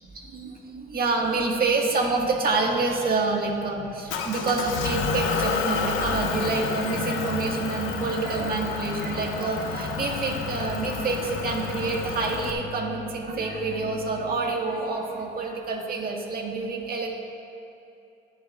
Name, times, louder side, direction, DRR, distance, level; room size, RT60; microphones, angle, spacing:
voice 1, 0.1-17.1, right 3 dB, 50° right, 0 dB, 1.6 m, -27 dB
Motor vehicle (road) / Engine, 4.1-12.5, left 5 dB, 90° left, 0.8 m, -30 dB
sound 1, 9.8-15.3, left 6 dB, 60° left, 1.2 m, -40 dB
20.0 x 7.6 x 2.4 m, 2.7 s
cardioid pair, 90°, 20 cm